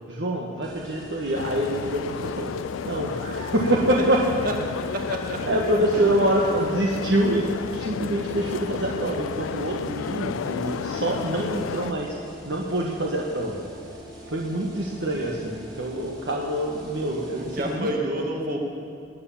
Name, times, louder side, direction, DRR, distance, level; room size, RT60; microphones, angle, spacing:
voice 1, 0.1-2.5 2.8-4.2 5.4-12.2 12.4-13.6 14.3-17.9, right 1 dB, 60° right, -2 dB, 1.4 m, -25 dB
sound 1, 0.6-17.8, right 1 dB, 20° right, 2.8 m, -44 dB
sound 2, 1.3-11.9, left 7 dB, 85° left, 0.3 m, -32 dB
voice 2, 4.9-5.5 5.9-6.2 10.5-10.6 10.9-11.0 17.0-18.6, right 1 dB, 45° right, 1 dB, 2.2 m, -30 dB
20.5 x 9.5 x 7.2 m, 2.5 s
head